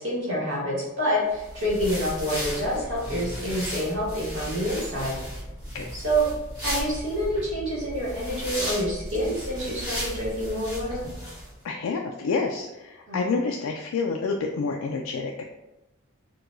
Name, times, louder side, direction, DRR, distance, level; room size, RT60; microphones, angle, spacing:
voice 1, 0.0-5.2 5.9-6.2 6.6-11.0 13.1-13.4, equal, 60° right, -5 dB, 1.5 m, -27 dB
sound 1, 1.3-11.5, equal, 20° right, 1.4 m, -35 dB
voice 2, 11.6-15.4, left 4 dB, 80° left, 1 dB, 0.3 m, -28 dB
4.5 x 2.2 x 2.5 m, 0.99 s
head